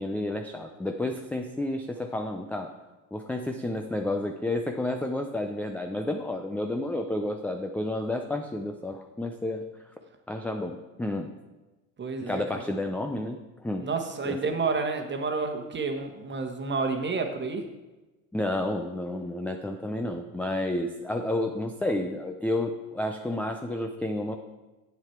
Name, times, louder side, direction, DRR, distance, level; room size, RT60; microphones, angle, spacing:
voice 1, 0.0-2.7 3.1-9.7 10.3-11.3 12.3-13.9 14.2-14.4 18.3-24.4, left 1 dB, 5° left, 5 dB, 0.4 m, -31 dB
voice 2, 12.0-12.6 13.8-17.7, right 4 dB, 25° right, 5 dB, 1.3 m, -30 dB
8.0 x 7.5 x 4.6 m, 1.1 s
hypercardioid pair, 85°, 42 cm